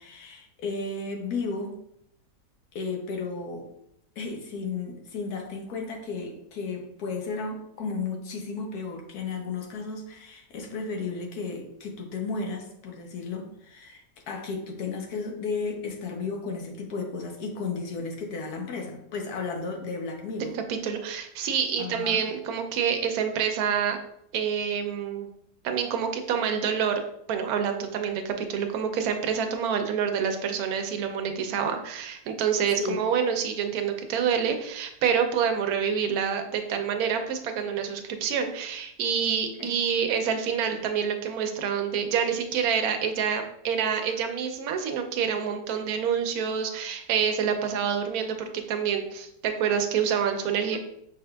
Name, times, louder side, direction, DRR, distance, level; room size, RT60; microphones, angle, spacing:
voice 1, 0.0-1.7 2.7-3.7 4.2-20.6 21.8-22.3 32.8-33.0 39.6-39.7 50.7-50.8, left 4 dB, 70° left, 2 dB, 1.2 m, -34 dB
voice 2, 20.7-24.0 24.3-25.3 25.6-27.0 27.3-50.8, right 7 dB, 70° right, 6 dB, 1.0 m, -27 dB
5.4 x 3.5 x 2.2 m, 0.74 s
omnidirectional pair, 1.7 m